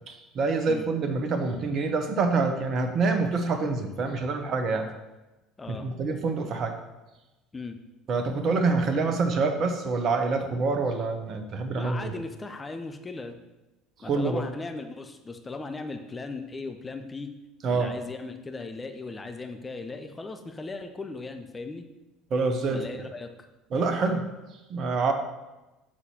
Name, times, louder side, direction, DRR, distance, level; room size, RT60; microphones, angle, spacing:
voice 1, 0.1-4.9 5.7-6.8 8.1-12.1 14.1-14.5 17.6-17.9 22.3-22.8 23.7-24.2 24.7-25.1, right 4 dB, 45° right, 6 dB, 0.9 m, -26 dB
voice 2, 5.6-5.9 7.5-7.8 11.8-13.4 14.0-17.3 17.7-21.9 22.7-23.5, left 3 dB, 20° left, 6 dB, 0.8 m, -38 dB
7.4 x 4.1 x 5.8 m, 1.0 s
figure-of-eight pair, 65°, 0 cm